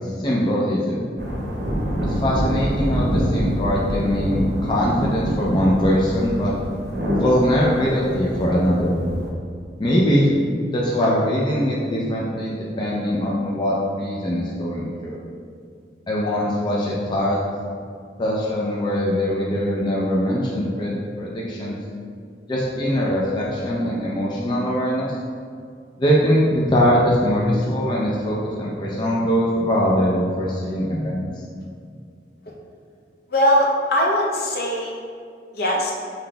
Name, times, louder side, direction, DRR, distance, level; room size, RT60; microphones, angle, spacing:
voice 1, 0.0-1.1 2.0-6.5 7.2-9.0 9.8-10.3 10.7-15.2 16.1-17.4 18.2-21.8 22.5-25.1 26.0-31.3, equal, 25° left, -5 dB, 0.4 m, -22 dB
sound 1, 1.2-9.3, equal, 70° right, 0.8 m, -25 dB
voice 2, 33.3-34.9 35.5-35.9, equal, 60° left, -2 dB, 0.7 m, -20 dB
5.7 x 3.8 x 2.2 m, 2.3 s
head